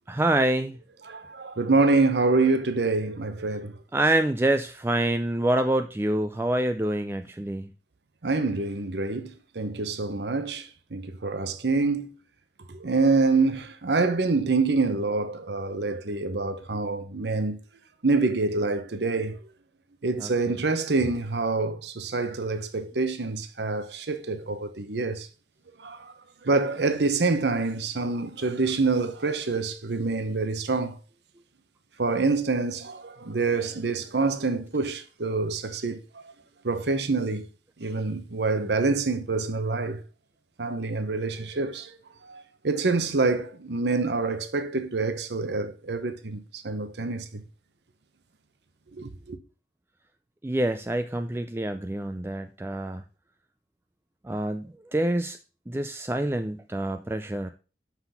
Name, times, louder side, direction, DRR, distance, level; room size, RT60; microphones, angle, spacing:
voice 1, 0.1-0.8 3.9-7.7 20.2-20.7 50.4-53.0 54.2-55.4 55.7-57.5, right 1 dB, 15° right, 0.3 m, -26 dB
voice 2, 1.1-3.7 8.2-12.1 12.7-17.6 18.0-19.4 20.0-25.3 25.8-26.1 26.4-31.0 32.0-36.0 36.6-37.5 37.8-40.0 40.6-41.9 42.2-47.4 49.0-49.4, right 3 dB, 75° right, 0.9 m, -26 dB
5.8 x 5.8 x 5.7 m
head